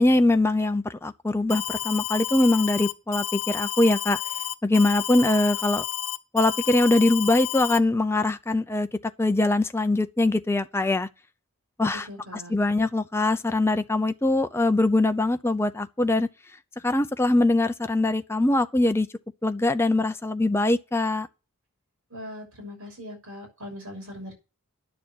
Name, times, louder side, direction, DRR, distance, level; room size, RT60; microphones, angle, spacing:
voice 1, 0.0-4.2 4.6-5.8 6.3-8.9 9.2-11.1 11.8-12.1 12.3-16.3 16.8-19.1 19.4-21.3, left 2 dB, 10° left, 0.6 m, -22 dB
Alarm, 1.5-7.8, left 11 dB, 70° left, 1.0 m, -31 dB
voice 2, 11.9-12.6 22.1-24.3, left 1 dB, 65° right, 6.3 m, -40 dB
10.5 x 6.9 x 7.2 m
head